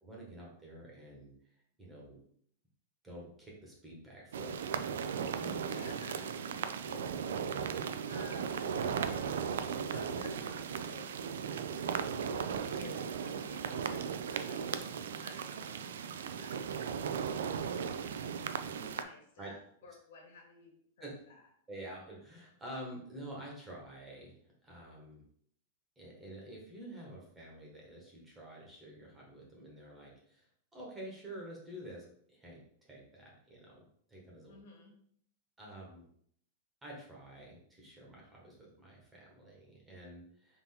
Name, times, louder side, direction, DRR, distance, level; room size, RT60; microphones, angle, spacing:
voice 1, 0.0-1.3 1.8-2.2 3.0-5.8 19.4-19.5 21.0-21.1 21.7-24.4 24.6-25.2 26.0-34.6 35.6-36.1 36.8-40.6, right 1 dB, 10° right, -3 dB, 1.1 m, -49 dB
sound 1, 4.3-19.0, right 7 dB, 90° right, 0.3 m, -37 dB
voice 2, 5.7-11.1 12.2-17.5 17.7-18.1 18.7-20.7 21.0-21.4 34.4-34.9, left 3 dB, 70° left, 1 dB, 1.4 m, -54 dB
3.8 x 2.7 x 4.2 m, 0.63 s
supercardioid pair, 160°, 0 cm